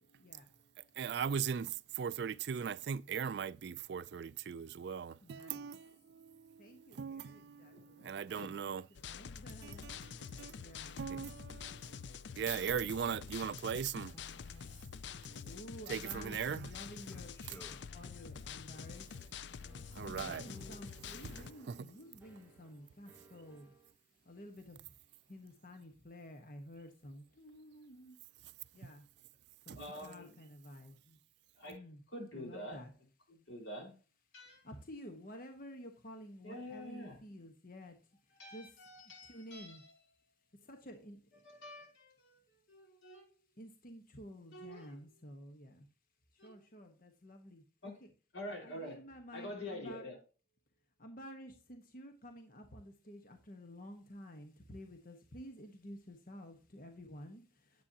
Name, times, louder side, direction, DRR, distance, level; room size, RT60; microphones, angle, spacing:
voice 1, 1.0-8.9 9.6-10.6 11.0-12.1 12.4-14.2 14.7-14.8 15.9-16.7 19.9-20.5 21.7-21.9 29.7-29.8, right 7 dB, 60° right, 0.3 m, -39 dB
voice 2, 5.2-5.7 6.6-7.7 8.6-8.7 9.0-9.8 10.6-11.1 15.4-17.4 17.9-19.1 20.0-23.7 24.3-24.8 25.3-28.1 28.7-29.0 29.7-30.9 31.7-32.0 32.3-32.9 34.6-37.9 38.5-38.7 39.3-39.8 40.7-41.2 43.6-45.8 46.4-47.9 48.6-50.1 51.0-57.4, equal, 45° left, 1.3 m, -51 dB
voice 3, 7.7-8.5 29.7-30.3 31.6-31.8 32.1-32.8 33.3-33.9 34.3-34.6 36.4-37.2 38.4-39.9 41.4-43.3 44.5-44.9 46.4-46.6 47.8-47.9 48.3-49.0 49.3-50.2, left 1 dB, 85° left, 4.9 m, -47 dB
sound 1, 8.9-21.5, left 6 dB, 65° left, 0.4 m, -47 dB
voice 4, 14.1-15.8 17.1-17.9 20.0-21.7, left 1 dB, 15° left, 1.0 m, -57 dB
sound 2, 17.1-23.9, right 2 dB, 10° right, 2.5 m, -64 dB
10.0 x 8.3 x 2.9 m
head